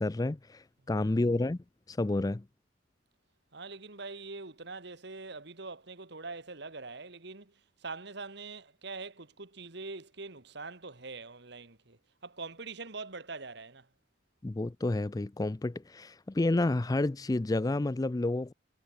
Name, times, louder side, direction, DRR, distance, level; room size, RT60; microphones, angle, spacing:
voice 1, 0.0-1.6 1.9-2.4 14.4-18.5, left 2 dB, 20° left, 0.4 m, -30 dB
voice 2, 3.5-13.9, right 3 dB, 60° right, 2.1 m, -44 dB
head